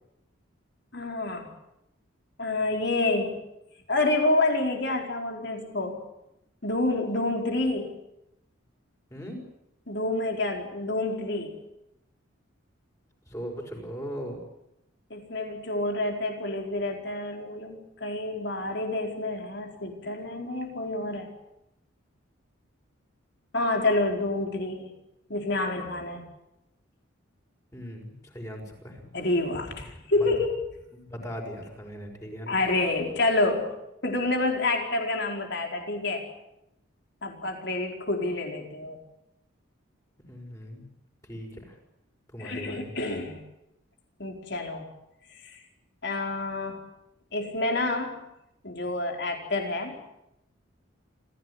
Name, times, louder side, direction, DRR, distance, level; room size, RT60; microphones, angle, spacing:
voice 1, 0.9-1.5 2.4-3.4 3.9-6.0 6.6-8.0 9.9-11.6 15.1-21.3 23.5-24.9 25.3-26.2 29.1-30.5 32.5-33.7 34.0-36.3 37.2-39.0 42.4-43.4 44.2-44.9 45.3-45.6 46.0-46.8 47.3-48.3 48.6-50.0, left 2 dB, 55° left, 2 dB, 4.7 m, -28 dB
voice 2, 9.1-9.4 13.3-14.4 27.7-29.0 30.2-30.3 30.9-32.6 40.2-40.9 41.3-41.8 42.3-42.9, equal, 15° left, 1 dB, 5.8 m, -39 dB
27.5 x 16.0 x 9.8 m, 0.87 s
head